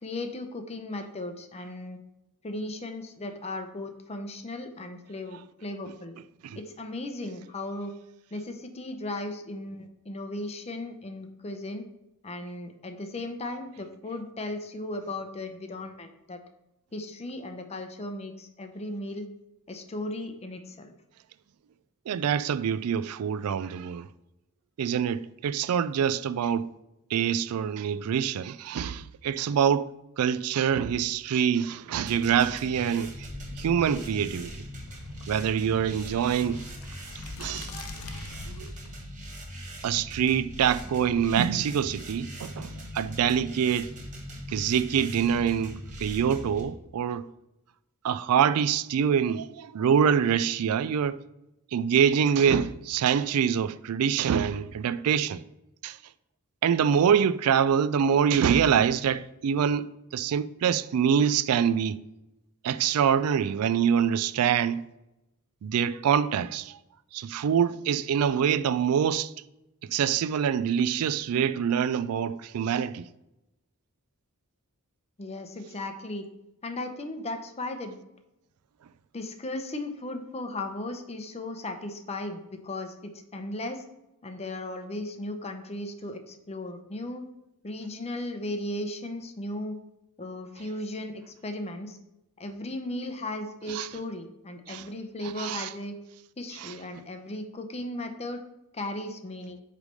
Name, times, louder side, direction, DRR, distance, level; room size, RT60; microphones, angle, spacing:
voice 1, 0.0-2.0 2.4-6.2 6.6-7.9 8.3-11.8 12.2-16.4 16.9-19.3 19.7-20.9 75.2-76.3 76.6-78.0 79.1-83.8 84.2-87.3 87.6-89.8 90.2-92.0 92.4-96.0 96.4-98.4 98.7-99.6, left 1 dB, 30° left, 0.7 m, -36 dB
voice 2, 22.1-24.1 24.8-26.7 27.1-33.3 33.6-34.5 35.3-36.6 37.4-38.2 38.5-38.7 39.8-43.9 44.5-47.3 48.0-51.2 51.7-55.4 55.8-56.0 56.6-62.0 62.6-64.8 65.6-66.8 67.1-69.3 69.8-73.1 93.7-93.9 94.7-94.9 95.2-95.7 96.5-96.8, right 8 dB, 75° right, 0.3 m, -25 dB
sound 1, 32.0-46.6, equal, 35° right, 1.4 m, -41 dB
sound 2, 33.2-38.9, left 3 dB, 75° left, 0.7 m, -44 dB
8.1 x 3.4 x 5.2 m
head